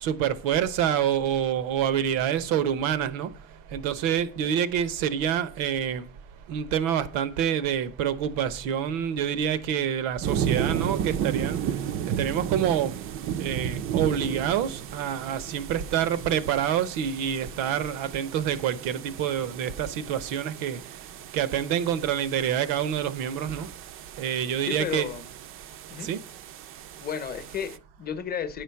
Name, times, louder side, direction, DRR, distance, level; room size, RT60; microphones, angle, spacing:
voice 1, 0.0-3.3 3.7-6.0 6.5-11.6 12.2-12.9 13.4-20.8 21.3-23.7 24.2-25.1 26.0-26.2, right 9 dB, 85° right, 0.9 m, -27 dB
sound 1, 10.2-27.8, right 9 dB, 40° right, 0.5 m, -34 dB
voice 2, 24.7-25.3 25.9-26.1 27.0-28.6, left 8 dB, 30° left, 0.8 m, -33 dB
9.4 x 5.0 x 5.7 m
cardioid pair, 155°, 33 cm